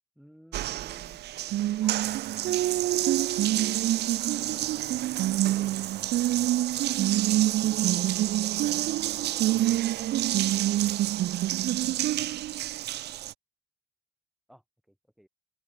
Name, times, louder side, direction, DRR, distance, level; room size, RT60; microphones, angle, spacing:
voice 1, 0.1-1.2 1.8-2.2 4.2-5.2 6.7-7.0 7.6-10.1 14.5-15.3, equal, ahead, 4.8 m, -53 dB
Water tap faucet, 0.5-13.3, right 14 dB, 55° right, 0.4 m, -26 dB
open air
cardioid pair, 125°, 21 cm